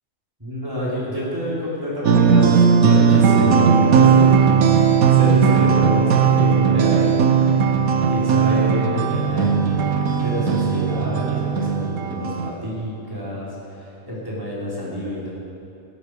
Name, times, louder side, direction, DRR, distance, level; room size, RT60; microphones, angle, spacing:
voice 1, 0.4-7.2 8.1-15.3, equal, 15° right, -8 dB, 4.3 m, -28 dB
sound 1, 2.0-12.5, right 6 dB, 85° right, 1.3 m, -17 dB
16.0 x 11.5 x 5.0 m, 2.6 s
omnidirectional pair, 1.5 m